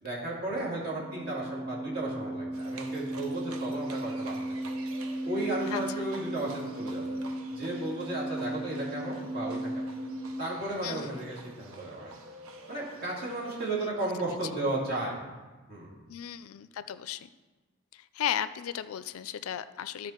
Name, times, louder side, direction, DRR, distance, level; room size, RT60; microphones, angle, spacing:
voice 1, 0.0-4.3 5.2-7.1 7.5-9.6 10.4-12.1 12.7-15.2 15.7-15.9, right 2 dB, 45° right, -6 dB, 2.8 m, -34 dB
sound 1, 0.8-10.4, right 1 dB, 65° right, 0.7 m, -36 dB
Livestock farm animals working animals, 2.5-13.9, right 2 dB, 85° right, 1.0 m, -48 dB
voice 2, 10.8-11.1 13.8-13.9 14.3-14.4 16.1-17.3 17.9-20.1, left 10 dB, 85° left, 14 dB, 0.4 m, -35 dB
13.0 x 5.0 x 4.4 m, 1.3 s
head